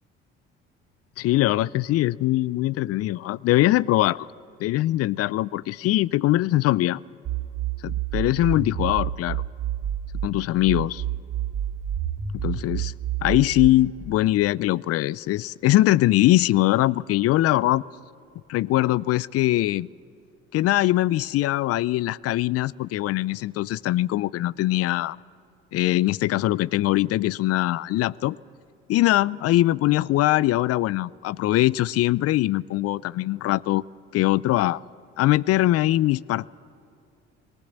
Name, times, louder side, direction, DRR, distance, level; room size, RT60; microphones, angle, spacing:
voice 1, 1.2-4.3 4.6-7.0 7.8-9.4 10.2-11.0 12.3-12.9 13.2-17.8 18.5-19.9 20.5-25.2 25.7-28.4 28.9-33.8 34.1-34.8 35.2-36.5, left 16 dB, 55° left, 23 dB, 0.4 m, -22 dB
sound 1, 7.2-10.3 10.7-13.7, right 10 dB, 60° right, 2.8 m, -29 dB
19.0 x 19.0 x 8.2 m, 2.5 s
hypercardioid pair, 65°, 29 cm